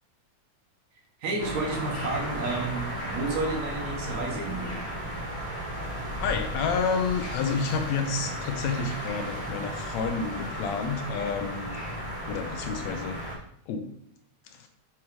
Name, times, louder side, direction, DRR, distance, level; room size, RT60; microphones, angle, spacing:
voice 1, 1.2-4.8 8.8-8.9, right 2 dB, 70° right, -1 dB, 2.5 m, -31 dB
sound 1, 1.4-13.4, equal, 45° left, 0.6 m, -35 dB
voice 2, 6.2-11.7 12.3-13.2 13.7-13.9 14.5-14.7, left 5 dB, 80° left, 6 dB, 1.9 m, -30 dB
7.2 x 3.1 x 4.7 m, 0.68 s
omnidirectional pair, 3.3 m